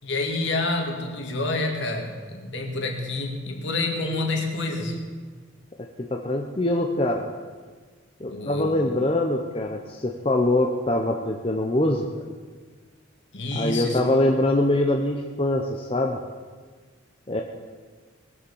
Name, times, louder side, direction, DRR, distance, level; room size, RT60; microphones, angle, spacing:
voice 1, 0.0-5.0 8.2-9.0 13.3-14.1, left 2 dB, 65° left, 2 dB, 2.2 m, -28 dB
voice 2, 6.0-7.3 8.2-12.0 13.5-16.2 17.3-17.4, left 1 dB, 25° left, 2 dB, 0.8 m, -23 dB
20.0 x 6.9 x 7.2 m, 1.5 s
head